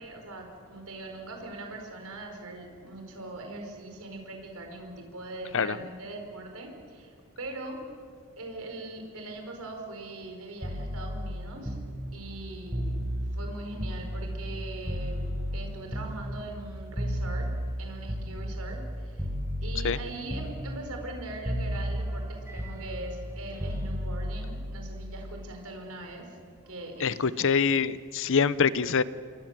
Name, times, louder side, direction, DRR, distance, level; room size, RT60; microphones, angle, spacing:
voice 1, 0.0-7.8 8.4-11.8 12.1-13.0 13.3-15.2 15.5-17.5 17.8-19.3 19.6-26.3 26.7-27.2, right 2 dB, 70° right, 3 dB, 4.9 m, -41 dB
sound 1, 10.6-14.6 14.9-18.9 19.2-20.0 20.3-21.2 21.4-25.4 26.7-26.9, equal, 10° right, 4.4 m, -33 dB
voice 2, 27.0-29.0, left 6 dB, 60° left, 17 dB, 0.7 m, -25 dB
27.5 x 23.0 x 7.6 m, 2.2 s
head